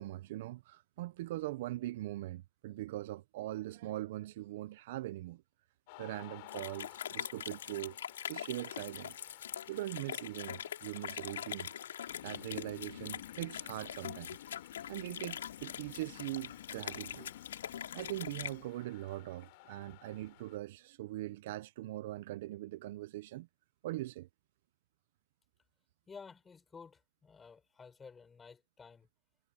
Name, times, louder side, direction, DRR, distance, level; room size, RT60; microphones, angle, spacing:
voice 1, 0.0-5.4 6.0-8.0 8.3-9.2 9.7-11.8 12.2-14.4 14.9-17.3 17.9-23.5 23.8-24.3, right 16 dB, 35° right, 0.4 m, -41 dB
sound 1, 5.9-20.6, left 24 dB, 30° left, 3.7 m, -57 dB
sound 2, 6.5-18.5, left 9 dB, 70° left, 3.5 m, -43 dB
Fire, 12.1-18.7, left 12 dB, 50° left, 2.2 m, -52 dB
voice 2, 26.1-29.1, left 5 dB, 10° left, 6.2 m, -53 dB
hypercardioid pair, 175°, 0 cm